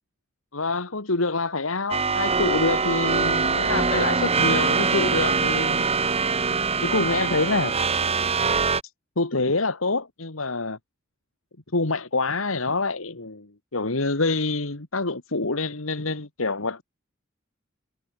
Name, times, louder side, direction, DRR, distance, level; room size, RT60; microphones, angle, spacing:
voice 1, 0.5-5.8 6.8-7.7 9.2-10.8 11.7-16.8, left 3 dB, 85° left, 2.2 m, -26 dB
sound 1, 1.9-8.8, right 5 dB, 30° right, 1.4 m, -23 dB
head